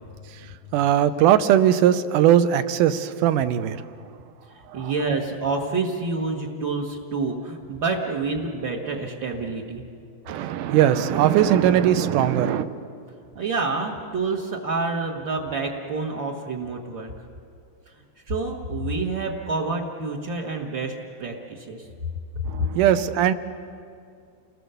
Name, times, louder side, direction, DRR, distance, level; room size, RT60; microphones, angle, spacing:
voice 1, 0.7-3.8 4.7-4.9 10.3-12.7 22.5-23.3, right 10 dB, 75° right, 11 dB, 2.1 m, -19 dB
voice 2, 4.7-9.8 13.3-17.1 18.3-21.9, right 3 dB, 50° right, -3 dB, 1.4 m, -28 dB
30.0 x 20.0 x 6.9 m, 2.3 s
omnidirectional pair, 4.2 m